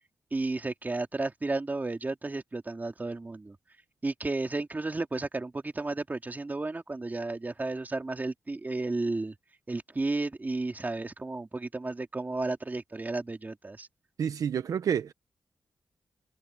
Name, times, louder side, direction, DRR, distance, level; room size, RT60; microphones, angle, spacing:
voice 1, 0.3-3.6 4.0-9.3 9.7-13.9, right 2 dB, 30° right, 2.6 m, -33 dB
voice 2, 14.2-15.1, right 8 dB, 85° right, 1.0 m, -29 dB
cardioid pair, 65°, 6 cm